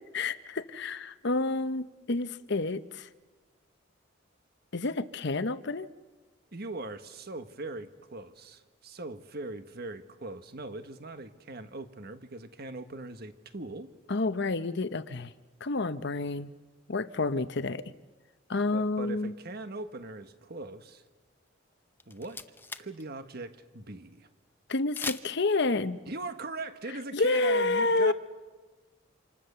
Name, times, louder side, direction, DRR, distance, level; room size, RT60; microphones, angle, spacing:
voice 1, 0.1-3.1 4.7-5.9 14.1-15.3 15.6-16.5 16.9-17.9 18.5-19.3 24.7-26.0 27.1-28.1, left 3 dB, 60° left, 13 dB, 0.9 m, -29 dB
voice 2, 6.5-13.9 18.7-21.0 22.1-22.4 22.8-24.3 26.1-28.1, right 2 dB, 55° right, 9 dB, 1.5 m, -40 dB
sound 1, 21.7-21.8 22.0-23.0 23.3-23.4 25.0-25.5, left 3 dB, 10° left, 0.7 m, -38 dB
27.5 x 27.0 x 6.9 m, 1.3 s
head